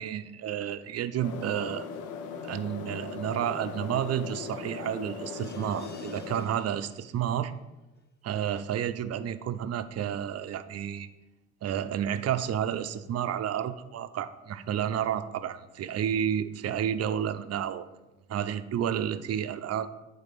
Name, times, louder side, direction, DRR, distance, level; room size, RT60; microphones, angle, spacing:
voice 1, 0.0-1.9 2.4-7.5 8.2-11.1 11.6-17.8 18.3-19.9, right 9 dB, 55° right, 11 dB, 0.6 m, -31 dB
sound 1, 1.2-6.4, left 6 dB, 85° left, 0.8 m, -39 dB
sound 2, 5.2-7.5 7.9-8.0 8.4-8.5, left 4 dB, 35° left, 1.2 m, -55 dB
8.3 x 4.0 x 5.2 m, 1.0 s
cardioid pair, 90°, 30 cm